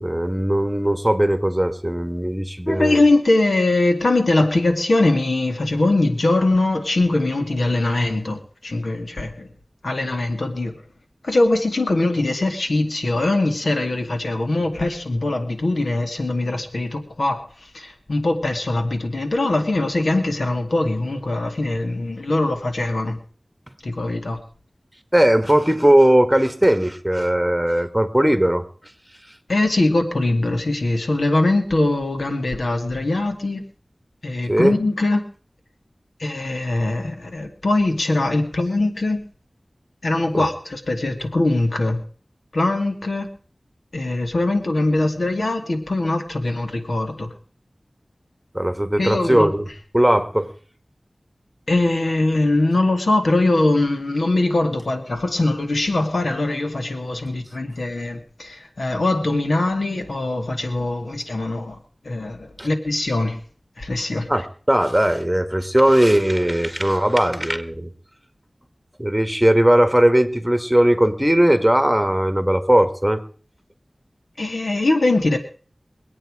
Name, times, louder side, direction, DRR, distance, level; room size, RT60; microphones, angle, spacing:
voice 1, 0.0-3.0 25.1-28.6 34.5-34.7 40.3-40.5 48.5-49.7 49.9-50.5 62.6-62.7 64.3-67.9 69.0-73.2, right 1 dB, 10° right, 9 dB, 1.8 m, -18 dB
voice 2, 2.7-9.5 9.8-10.7 11.2-17.4 17.7-23.2 23.8-24.4 29.5-33.6 34.2-35.2 36.2-39.2 40.0-42.0 42.5-43.3 43.9-47.3 49.0-49.5 51.7-63.4 63.8-64.3 74.4-75.4, left 2 dB, 85° left, 4 dB, 2.3 m, -21 dB
23.5 x 8.8 x 4.9 m, 0.41 s
wide cardioid pair, 45°, 0 cm